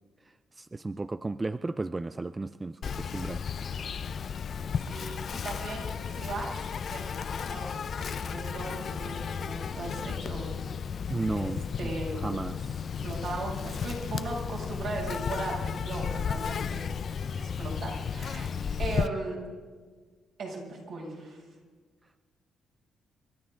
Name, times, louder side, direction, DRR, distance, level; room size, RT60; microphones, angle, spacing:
voice 1, 0.6-3.4 11.1-12.8, right 3 dB, 20° right, 13 dB, 0.4 m, -34 dB
Insect, 2.8-19.1, left 7 dB, 50° left, 0.6 m, -34 dB
voice 2, 4.9-6.5 6.9-7.7 8.0-10.5 11.3-11.4 11.8-12.2 13.0-16.8 17.4-18.5 18.8-19.4 20.4-21.4, right 3 dB, 65° right, -3 dB, 6.5 m, -37 dB
29.5 x 13.0 x 3.8 m, 1.5 s
cardioid pair, 90°, 0 cm